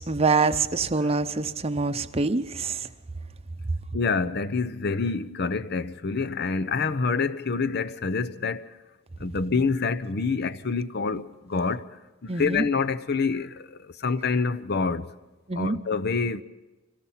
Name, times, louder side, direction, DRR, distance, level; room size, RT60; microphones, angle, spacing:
voice 1, 0.0-2.9 12.3-12.6 15.5-15.8, right 4 dB, 30° right, 0.8 m, -25 dB
voice 2, 3.9-8.7 9.2-11.9 12.2-15.1 15.5-16.4, left 4 dB, 55° left, 0.8 m, -27 dB
25.5 x 18.0 x 5.7 m
head